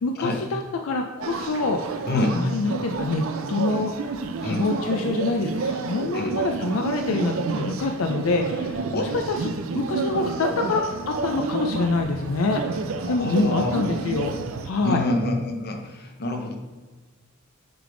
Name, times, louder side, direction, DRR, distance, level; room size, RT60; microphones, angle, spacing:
voice 1, 0.0-3.9 4.4-12.6 13.1-14.4 14.6-15.0, left 3 dB, 75° left, 4 dB, 0.5 m, -26 dB
sound 1, 1.2-14.7, right 4 dB, 70° right, 0.5 m, -30 dB
voice 2, 2.1-2.4 4.4-4.6 6.1-6.4 8.9-9.0 10.7-10.8 13.0-13.7 14.8-16.6, left 2 dB, 50° left, 3 dB, 0.8 m, -27 dB
8.0 x 3.4 x 3.8 m, 1.3 s
head